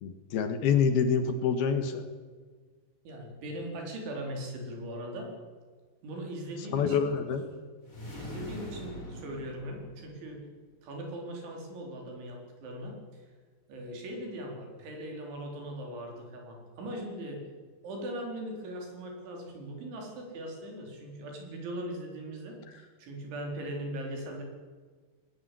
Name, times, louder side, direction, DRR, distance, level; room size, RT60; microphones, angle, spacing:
voice 1, 0.0-2.0 6.7-7.4, left 6 dB, 65° left, 8 dB, 3.2 m, -26 dB
voice 2, 3.0-5.3 6.0-7.1 8.1-10.4 10.8-13.2 13.7-17.4 17.8-24.4, right 1 dB, 90° right, 1 dB, 6.8 m, -40 dB
sound 1, 7.8-10.4, left 1 dB, 20° left, 5.1 m, -43 dB
21.0 x 18.0 x 8.4 m, 1.5 s
omnidirectional pair, 5.2 m